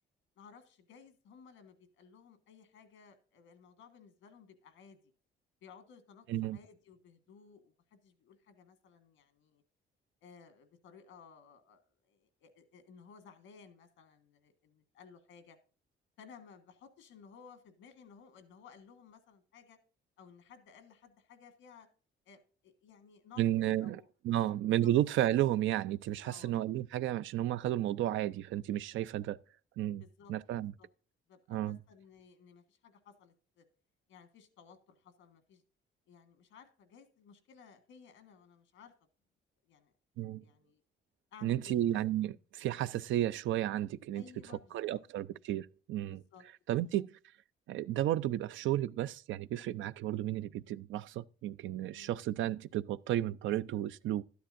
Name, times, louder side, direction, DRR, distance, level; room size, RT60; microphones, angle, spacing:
voice 1, 0.4-5.1 5.6-9.6 10.2-15.6 16.2-19.8 20.2-21.9 22.2-23.5 23.8-24.1 24.3-24.9 26.2-26.5 30.0-30.3 30.8-30.9 31.3-33.6 34.1-35.6 36.1-38.9 39.6-39.9 40.4-40.8 41.3-42.0 42.7-42.8 44.1-45.0 46.1-46.4 51.9-52.1, left 6 dB, 85° left, 1.6 m, -57 dB
voice 2, 23.4-24.0 24.2-29.4 29.8-30.0 30.3-30.7 31.5-31.8 40.2-40.4 41.4-44.2 44.7-46.2 46.7-47.1 47.7-54.2, right 13 dB, 75° right, 0.5 m, -32 dB
12.0 x 10.0 x 2.6 m
cardioid pair, 90°, 20 cm